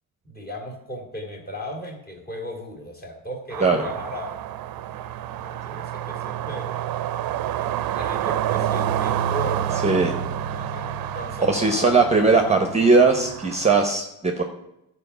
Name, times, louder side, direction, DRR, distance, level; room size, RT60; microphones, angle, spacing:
voice 1, 0.2-4.4 5.4-6.7 7.5-9.9 10.6-12.0 12.2-12.6, left 1 dB, 25° left, 2 dB, 2.4 m, -36 dB
sound 1, 3.5-13.8, right 10 dB, 65° right, 0.7 m, -28 dB
voice 2, 9.8-10.1 11.5-14.4, right 3 dB, 15° right, 5 dB, 0.9 m, -19 dB
12.5 x 4.8 x 6.8 m, 0.87 s
cardioid pair, 125°, 38 cm